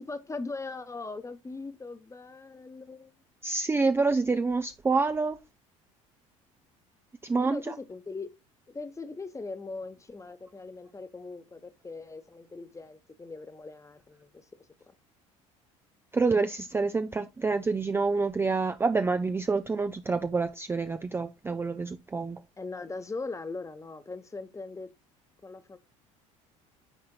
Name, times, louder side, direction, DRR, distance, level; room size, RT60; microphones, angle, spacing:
voice 1, 0.0-3.1 7.4-8.3 8.7-14.4 22.6-24.9 25.4-25.8, left 3 dB, 20° left, 1.0 m, -40 dB
voice 2, 3.4-5.4 7.2-7.7 16.1-22.4, right 4 dB, 15° right, 0.4 m, -27 dB
12.0 x 4.3 x 2.3 m
hypercardioid pair, 70°, 17 cm